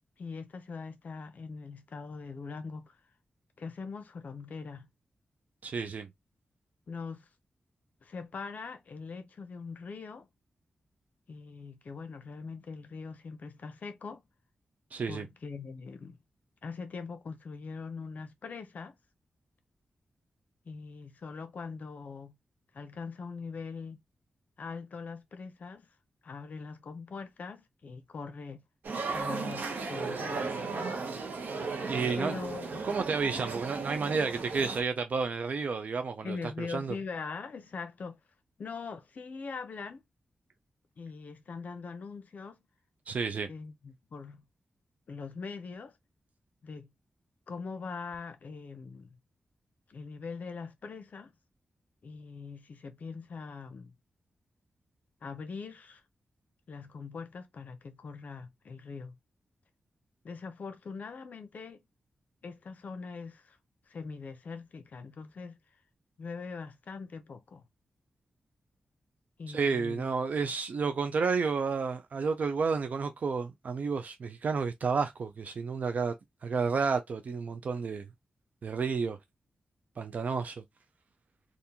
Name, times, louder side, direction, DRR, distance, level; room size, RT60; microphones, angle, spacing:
voice 1, 0.2-3.0 3.6-4.9 6.9-7.3 8.0-10.3 11.3-14.2 15.1-16.2 16.6-18.9 20.7-22.3 22.7-24.0 24.6-25.9 26.2-28.6 29.1-30.5 32.2-32.9 36.2-38.2 38.6-40.0 41.0-42.7 43.5-44.4 45.1-46.0 46.6-46.9 47.5-49.2 49.9-51.3 52.0-54.0 55.2-56.0 56.7-59.1 60.2-61.8 62.4-63.6 63.9-65.6 66.2-67.7 69.4-70.1, left 4 dB, 55° left, 0.6 m, -42 dB
voice 2, 5.6-6.1 14.9-15.2 31.8-32.4 32.8-37.0 43.1-43.5 69.5-76.1 76.4-78.1 78.6-79.2 80.0-80.6, right 5 dB, 55° right, 0.4 m, -31 dB
sound 1, 28.8-34.8, right 4 dB, 80° right, 0.8 m, -35 dB
3.5 x 2.5 x 2.8 m
wide cardioid pair, 130°, 3 cm